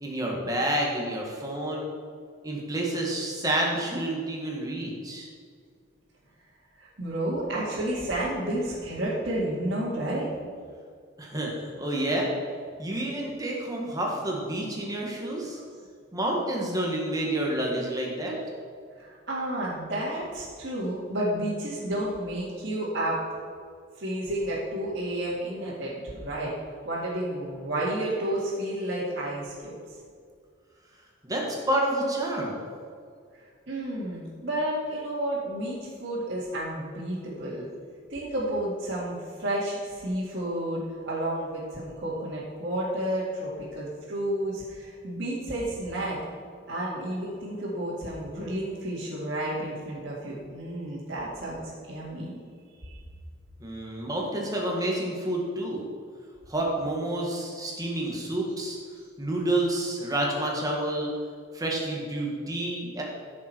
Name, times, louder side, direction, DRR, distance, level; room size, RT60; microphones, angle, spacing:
voice 1, 0.0-1.9 2.4-5.3 11.2-11.5 11.8-12.3 12.8-15.6 16.1-18.4 31.2-32.6 53.6-55.8 56.5-58.8 59.2-61.1 61.5-63.0, right 1 dB, 20° right, -1 dB, 1.6 m, -29 dB
voice 2, 6.8-10.3 18.9-23.2 24.0-26.5 26.8-29.7 33.7-37.6 38.1-46.2 46.7-52.3 52.8-53.0, right 1 dB, 55° right, -10 dB, 2.2 m, -31 dB
15.0 x 6.5 x 4.5 m, 2.2 s
head